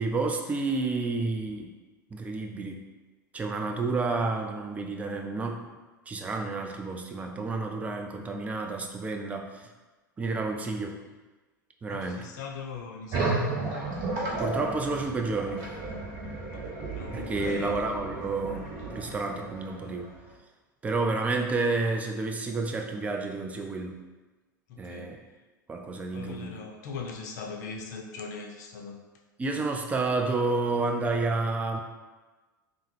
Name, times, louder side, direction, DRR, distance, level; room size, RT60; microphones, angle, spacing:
voice 1, 0.0-1.7 2.1-2.8 3.3-5.7 6.1-9.7 10.2-11.0 11.8-12.3 14.4-15.7 17.1-18.6 18.9-20.1 20.8-24.0 24.8-25.2 25.7-26.6 29.4-31.8, right 3 dB, 15° right, 3 dB, 0.3 m, -30 dB
voice 2, 11.9-13.5 16.5-17.8 24.7-25.1 26.1-29.0, left 5 dB, 60° left, 2 dB, 0.5 m, -40 dB
sound 1, 13.1-20.3, right 3 dB, 50° right, 0.7 m, -33 dB
3.3 x 2.0 x 3.2 m, 1.2 s
figure-of-eight pair, 85°, 11 cm